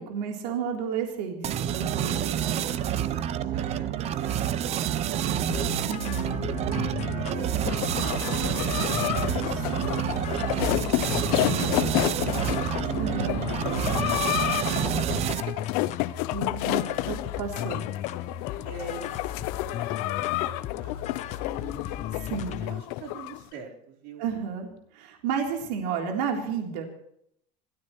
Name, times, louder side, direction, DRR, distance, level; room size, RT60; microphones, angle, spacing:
voice 1, 0.0-2.1 5.9-6.5 9.5-9.9 13.0-13.4 16.3-16.8 17.1-17.8 22.2-22.6 24.2-24.7 24.9-26.9, right 6 dB, 90° right, 1 dB, 3.6 m, -32 dB
sound 1, 1.4-15.6, right 10 dB, 30° right, 0.8 m, -28 dB
voice 2, 2.1-6.1 6.4-9.2 9.7-12.8 13.4-13.9 16.7-17.2 18.6-22.0 22.5-24.2, right 5 dB, 55° right, -1 dB, 4.3 m, -46 dB
sound 2, 5.5-22.8, left 11 dB, 35° left, 0.8 m, -36 dB
sound 3, 7.6-23.4, left 17 dB, 65° left, 0.8 m, -30 dB
27.0 x 15.5 x 3.2 m, 0.70 s
cardioid pair, 165°, 21 cm